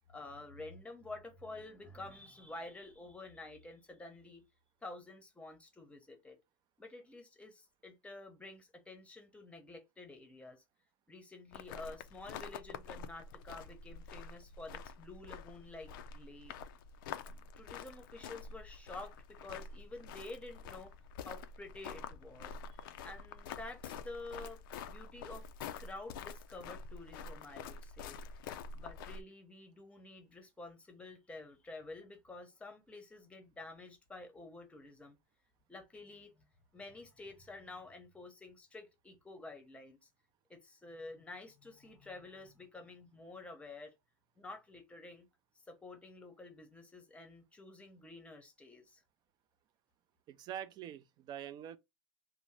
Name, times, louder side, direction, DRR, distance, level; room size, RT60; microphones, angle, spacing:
voice 1, 0.0-4.4 4.8-6.4 6.8-10.6 11.1-16.5 17.2-20.9 21.2-22.6 23.0-24.6 24.9-25.5 25.8-28.2 28.7-35.2 35.7-36.5 36.7-40.1 40.5-43.9 44.4-45.3 45.7-49.0, left 2 dB, 10° left, 0.7 m, -50 dB
sound 1, 11.5-29.2, left 6 dB, 80° left, 0.4 m, -47 dB
voice 2, 50.3-51.8, right 10 dB, 40° right, 0.3 m, -45 dB
2.7 x 2.0 x 3.2 m
supercardioid pair, 115°, 11 cm